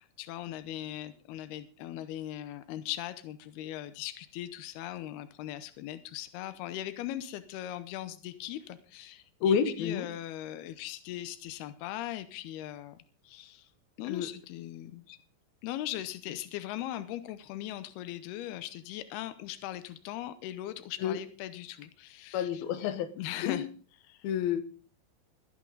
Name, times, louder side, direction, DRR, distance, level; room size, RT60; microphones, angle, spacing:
voice 1, 0.0-13.0 13.2-13.7 14.0-15.2 15.6-22.6 23.2-23.7 24.0-24.3, left 13 dB, 90° left, 12 dB, 2.2 m, -39 dB
voice 2, 9.4-10.1 14.0-14.3 21.0-21.2 22.3-23.1 23.4-23.6 24.2-24.6, left 8 dB, 65° left, 10 dB, 2.5 m, -29 dB
21.5 x 12.0 x 4.0 m, 0.39 s
omnidirectional pair, 5.8 m